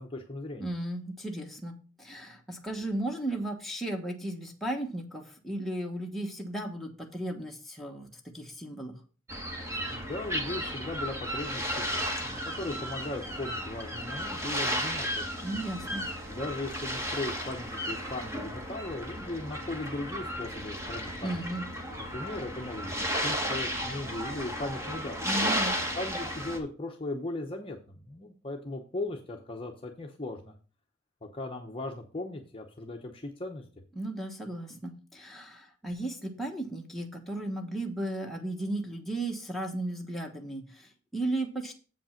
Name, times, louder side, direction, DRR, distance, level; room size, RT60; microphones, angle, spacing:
voice 1, 0.0-0.7 9.9-15.4 16.3-21.4 22.1-25.2 25.9-30.5 31.2-33.6, left 2 dB, 25° left, 2 dB, 0.8 m, -38 dB
voice 2, 0.6-8.1 8.3-9.0 15.4-16.1 21.2-21.7 25.2-25.8 33.9-41.7, right 1 dB, ahead, -1 dB, 1.2 m, -35 dB
sound 1, 9.3-26.6, equal, 15° right, 1.4 m, -34 dB
7.7 x 5.3 x 5.8 m, 0.37 s
head